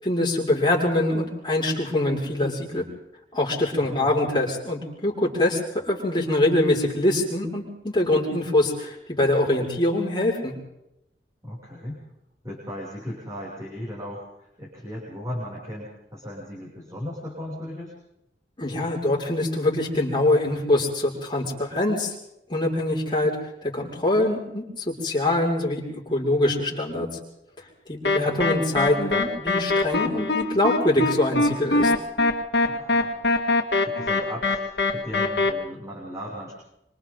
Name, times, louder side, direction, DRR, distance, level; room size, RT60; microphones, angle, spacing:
voice 1, 0.0-2.9 3.3-10.5 18.6-22.1 22.5-23.4 23.6-25.8 26.1-27.1 27.9-31.9, left 1 dB, 25° left, -3 dB, 6.1 m, -24 dB
voice 2, 3.8-4.2 11.4-12.0 12.4-17.9 28.2-28.5 32.6-33.1 33.8-36.6, equal, 20° right, -5 dB, 6.9 m, -37 dB
sound 1, 28.0-35.5, left 3 dB, 70° left, 2.1 m, -23 dB
26.5 x 26.0 x 4.0 m, 0.85 s
head